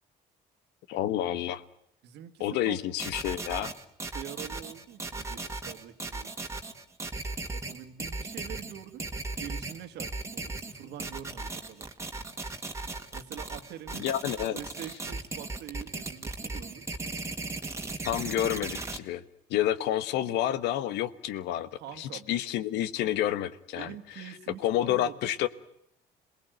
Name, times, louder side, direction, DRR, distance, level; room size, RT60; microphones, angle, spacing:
voice 1, 0.9-1.6 2.4-3.7 14.0-14.6 18.0-19.2 19.5-21.7 22.0-24.2 24.6-25.5, left 12 dB, 90° left, 14 dB, 1.3 m, -29 dB
voice 2, 2.0-2.8 4.1-6.3 7.5-11.9 13.1-14.1 14.5-16.8 21.7-22.4 23.8-25.4, right 11 dB, 80° right, 9 dB, 1.9 m, -45 dB
sound 1, 3.0-19.0, right 3 dB, 15° right, 2.0 m, -37 dB
27.0 x 19.5 x 9.1 m, 0.78 s
cardioid pair, 110°, 17 cm